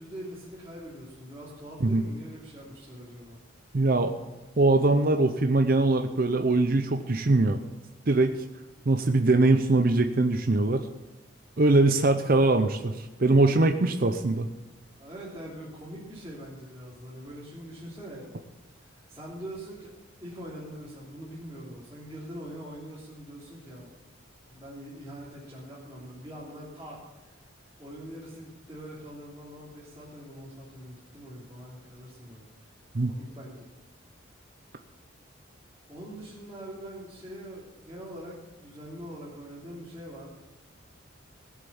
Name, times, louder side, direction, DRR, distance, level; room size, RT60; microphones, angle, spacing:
voice 1, 0.0-3.4 15.0-18.3 18.6-23.9 24.4-27.4 27.8-32.5 33.1-33.7 35.9-40.3, equal, 15° right, -10 dB, 3.1 m, -43 dB
voice 2, 3.7-4.1 4.6-7.6 8.1-8.3 8.9-10.9 11.6-14.5 32.9-33.1, right 2 dB, 45° right, 6 dB, 0.6 m, -22 dB
16.5 x 7.5 x 7.0 m, 1.1 s
head